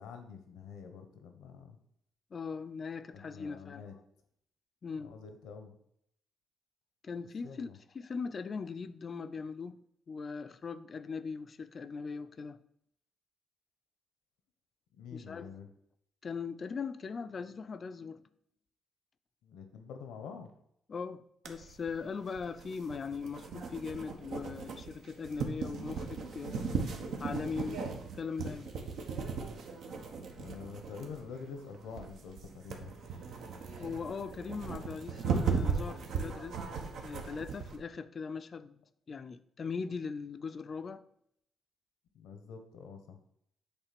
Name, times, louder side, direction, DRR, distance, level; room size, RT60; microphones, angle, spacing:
voice 1, 0.0-1.8 3.1-3.9 5.0-5.8 7.4-7.8 14.9-15.7 19.4-20.5 30.3-32.9 42.1-43.2, left 5 dB, 90° left, 1.1 m, -47 dB
voice 2, 2.3-3.8 4.8-5.1 7.0-7.7 7.9-9.8 10.1-12.6 15.1-15.5 16.2-18.2 20.9-26.7 27.2-27.8 28.2-28.7 33.8-36.6 37.0-38.8 39.1-41.0, left 5 dB, 40° left, 0.5 m, -40 dB
sound 1, 21.5-37.8, right 5 dB, 70° right, 1.1 m, -37 dB
8.1 x 3.3 x 5.9 m
cardioid pair, 90°, 0 cm